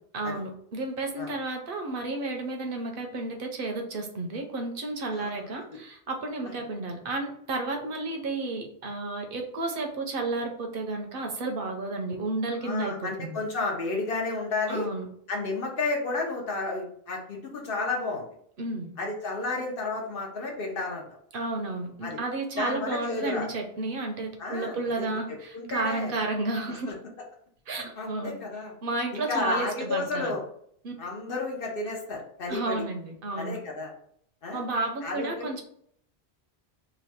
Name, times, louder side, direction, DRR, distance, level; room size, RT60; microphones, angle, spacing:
voice 1, 0.1-13.4 14.7-15.1 18.6-18.9 21.3-26.9 27.7-28.3 28.8-30.3 30.8-30.9 32.5-33.6 34.5-35.6, right 2 dB, 60° right, 3 dB, 0.8 m, -32 dB
voice 2, 5.1-5.5 12.6-14.9 15.3-18.3 19.0-21.0 22.0-22.2 22.6-23.5 24.4-26.1 26.9-27.0 27.7-28.7 29.1-30.4 31.0-32.8 33.4-33.9 34.4-34.6 35.0-35.5, left 3 dB, 60° left, 0 dB, 1.0 m, -32 dB
3.0 x 2.3 x 4.2 m, 0.66 s
omnidirectional pair, 1.1 m